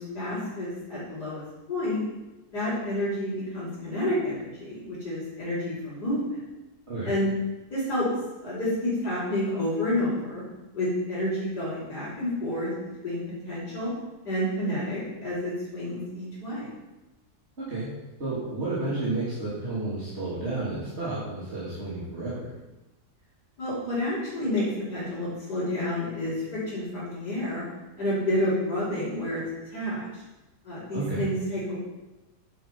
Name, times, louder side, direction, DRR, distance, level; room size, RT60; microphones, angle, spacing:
voice 1, 0.0-1.4 1.7-2.0 2.5-6.4 7.0-7.3 7.7-8.1 8.4-10.4 10.7-12.7 13.0-13.9 14.3-16.7 23.6-27.6 28.0-29.4 29.7-30.0 30.6-31.8, left 1 dB, 85° left, -11 dB, 5.4 m, -29 dB
voice 2, 17.6-17.9 18.2-22.5 30.9-31.2, right 2 dB, 40° right, -10 dB, 3.4 m, -31 dB
10.5 x 9.2 x 5.8 m, 1.0 s
omnidirectional pair, 1.7 m